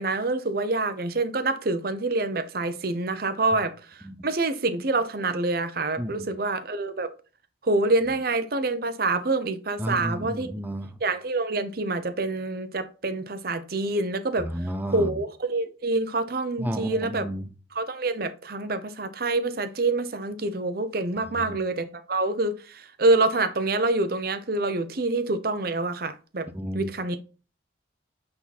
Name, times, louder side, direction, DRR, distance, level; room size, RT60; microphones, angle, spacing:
voice 1, 0.0-7.1 7.6-10.5 11.0-14.5 14.9-17.3 17.7-26.5 26.7-27.2, right 2 dB, 50° right, 0.7 m, -26 dB
voice 2, 9.8-11.0 14.4-15.2 16.6-17.5 21.3-21.6 26.5-26.9, equal, 10° right, 0.6 m, -32 dB
8.4 x 3.8 x 4.1 m
head